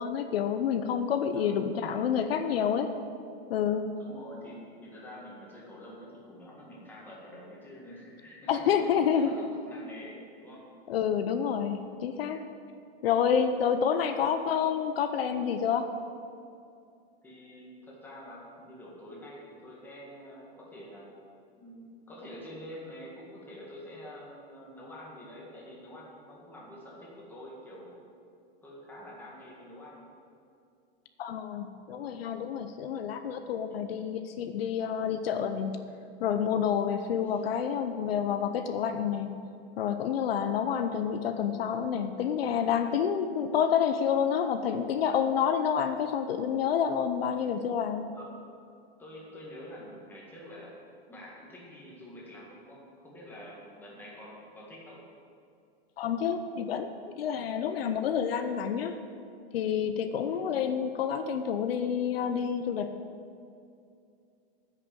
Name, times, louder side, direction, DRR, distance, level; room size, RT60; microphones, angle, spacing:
voice 1, 0.0-2.9 3.5-3.9 8.5-9.3 10.9-12.4 13.0-15.9 31.2-35.8 36.2-39.3 39.8-48.1 56.0-56.9 57.2-59.0 59.5-62.9, left 8 dB, 70° left, 8 dB, 0.8 m, -28 dB
voice 2, 4.0-10.7 13.9-14.0 17.2-21.1 21.6-28.0 28.6-30.1 33.7-33.9 37.2-37.6 48.1-48.3 49.0-50.7 51.1-55.0 60.3-60.4, equal, 5° left, -5 dB, 1.7 m, -47 dB
9.9 x 6.7 x 8.7 m, 2.5 s
supercardioid pair, 170°, 31 cm